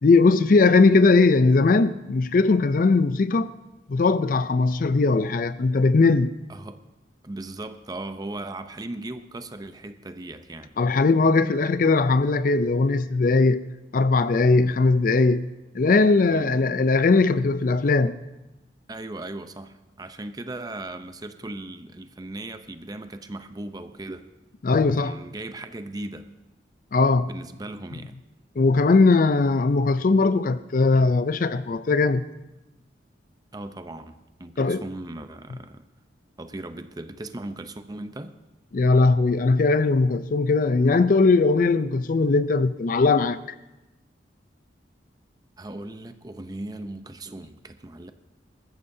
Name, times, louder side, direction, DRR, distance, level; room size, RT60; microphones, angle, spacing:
voice 1, 0.0-3.5 3.9-6.4 10.8-13.6 13.9-15.5 15.7-18.1 24.6-25.1 26.9-27.3 28.6-32.2 34.6-34.8 38.7-43.4, left 3 dB, 50° left, 0.4 m, -19 dB
voice 2, 6.5-6.8 7.2-10.7 16.3-16.5 18.9-24.3 25.0-26.3 27.3-28.2 33.5-34.1 34.4-35.9 36.4-38.4 45.6-48.1, right 2 dB, 20° right, 0.6 m, -37 dB
21.0 x 14.0 x 2.7 m
head